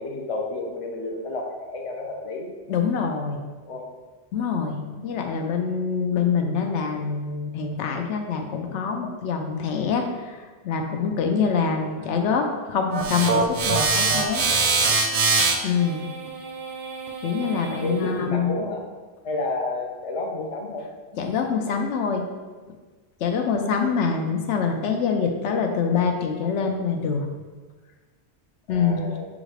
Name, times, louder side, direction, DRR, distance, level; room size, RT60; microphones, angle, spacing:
voice 1, 0.0-2.5 3.7-3.9 4.8-5.2 17.8-18.9 19.2-20.9 23.4-24.2 28.7-29.3, left 2 dB, 45° left, 1 dB, 0.5 m, -31 dB
voice 2, 2.7-3.4 4.3-14.5 15.6-16.0 17.2-18.5 21.1-22.2 23.2-27.3 28.7-29.1, left 6 dB, 85° left, 4 dB, 0.9 m, -25 dB
sound 1, 12.9-18.1, right 4 dB, 60° right, 0.6 m, -24 dB
6.1 x 2.5 x 3.2 m, 1.3 s
omnidirectional pair, 1.2 m